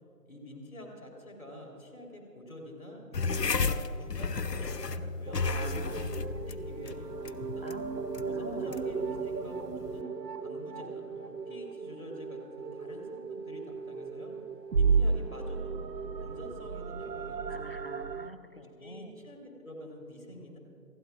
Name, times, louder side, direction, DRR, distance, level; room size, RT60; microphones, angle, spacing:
voice 1, 0.3-3.7 4.0-5.4 5.9-7.7 8.2-10.1 10.4-14.4 14.7-15.8 16.2-17.8 18.8-20.6, left 1 dB, 55° left, 0 dB, 3.5 m, -47 dB
sound 1, 3.1-10.0, left 4 dB, 75° left, 0.8 m, -34 dB
sound 2, 5.3-18.3, right 5 dB, 75° right, 0.8 m, -34 dB
voice 2, 5.5-6.3 7.6-8.8 17.5-19.1, right 1 dB, 35° left, 6 dB, 0.8 m, -46 dB
28.0 x 16.0 x 2.4 m, 2.7 s
figure-of-eight pair, 175°, 49 cm